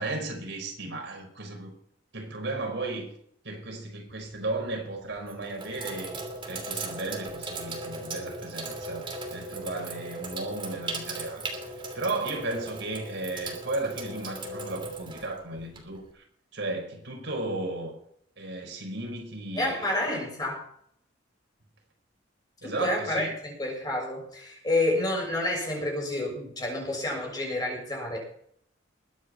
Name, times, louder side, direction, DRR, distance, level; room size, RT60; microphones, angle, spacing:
voice 1, 0.0-1.7 2.1-3.1 3.4-6.2 6.5-11.5 11.9-16.2 16.5-17.9 18.4-20.0 22.6-23.3, right 2 dB, 65° right, 5.1 m, -34 dB
Sink (filling or washing), 4.1-4.5 5.2-16.1, right 2 dB, 25° right, 3.1 m, -38 dB
voice 2, 19.6-20.7 22.6-28.2, left 1 dB, 20° left, 6.8 m, -29 dB
22.0 x 9.1 x 4.5 m
head